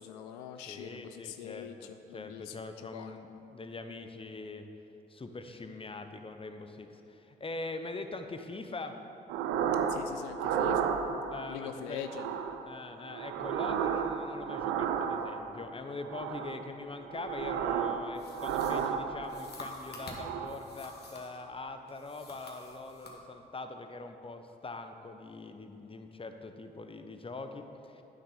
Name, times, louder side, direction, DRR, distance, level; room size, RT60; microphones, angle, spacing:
voice 1, 0.0-3.2 9.9-10.9 11.4-12.4, left 9 dB, 80° left, 8 dB, 0.4 m, -43 dB
voice 2, 0.7-4.6 5.1-9.0 11.3-12.0 12.7-28.0, left 3 dB, 25° left, 7 dB, 1.0 m, -43 dB
sound 1, 9.3-10.0 10.3-11.4 12.0-12.6 13.1-15.5 16.0-16.7 17.0-18.0 18.3-19.5 20.0-20.6, right 7 dB, 75° right, 0.6 m, -32 dB
sound 2, 18.1-21.4 21.9-23.2, left 2 dB, 50° left, 2.0 m, -48 dB
9.3 x 7.5 x 5.6 m, 2.9 s
hypercardioid pair, 45°, 21 cm